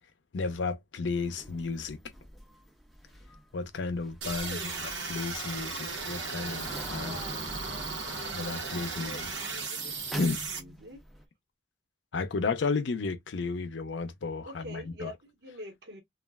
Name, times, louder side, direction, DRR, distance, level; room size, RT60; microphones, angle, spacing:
voice 1, 0.3-2.0 3.5-4.6 5.1-7.1 8.3-9.3 10.2-10.4 12.1-15.1, left 4 dB, 85° left, 0.5 m, -33 dB
sound 1, 1.1-11.2, right 1 dB, ahead, 0.4 m, -45 dB
sound 2, 4.2-10.6, right 4 dB, 90° right, 1.0 m, -36 dB
voice 2, 4.4-4.9 6.1-11.0 14.4-16.0, left 1 dB, 65° right, 1.1 m, -46 dB
3.1 x 2.3 x 2.2 m
head